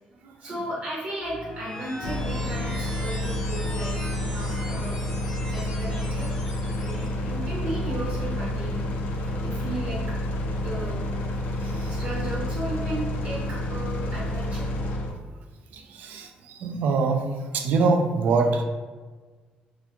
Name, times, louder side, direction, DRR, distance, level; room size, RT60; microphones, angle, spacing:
voice 1, 0.4-5.0 5.4-6.3 6.7-8.8 9.4-10.2 10.6-11.0 11.9-14.7, right 1 dB, 50° right, -6 dB, 0.8 m, -35 dB
sound 1, 1.2-7.1, equal, 15° left, 0.8 m, -40 dB
sound 2, 2.0-15.1, left 1 dB, 75° left, 0.3 m, -29 dB
voice 2, 11.6-12.0 15.7-17.3 17.5-18.6, right 4 dB, 75° right, 4 dB, 0.3 m, -25 dB
2.4 x 2.1 x 2.8 m, 1.4 s
cardioid pair, 145°, 3 cm